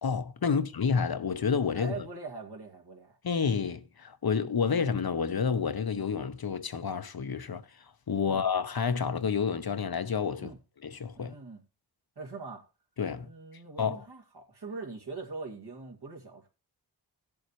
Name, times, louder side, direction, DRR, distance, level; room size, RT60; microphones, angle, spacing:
voice 1, 0.0-2.0 3.2-7.6 8.1-10.5 10.8-11.3 13.0-13.3 13.8-14.0, left 6 dB, 55° left, 0.8 m, -29 dB
voice 2, 1.8-3.2 8.3-8.4 10.4-10.6 11.2-11.6 12.2-12.6 13.2-16.5, right 3 dB, 65° right, 2.4 m, -42 dB
16.5 x 7.1 x 3.0 m
cardioid pair, 45°, 43 cm